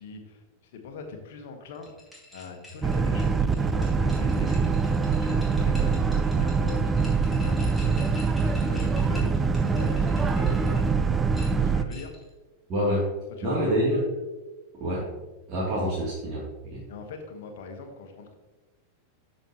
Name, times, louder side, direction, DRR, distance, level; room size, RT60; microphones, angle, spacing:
voice 1, 0.0-4.6 5.1-8.3 8.7-11.2 11.5-12.1 13.4-13.8 16.9-18.3, left 4 dB, 55° left, 5 dB, 1.3 m, -42 dB
sound 1, 1.7-10.9 11.3-12.3, left 2 dB, ahead, 2.7 m, -47 dB
Boat Water vehicle, 2.8-11.8, right 5 dB, 15° right, 0.5 m, -24 dB
voice 2, 12.7-13.0 13.4-14.0 14.8-15.0 15.5-16.4 16.7-16.8, equal, 30° right, -8 dB, 2.8 m, -26 dB
12.5 x 5.5 x 3.0 m, 1.1 s
figure-of-eight pair, 90°, 0 cm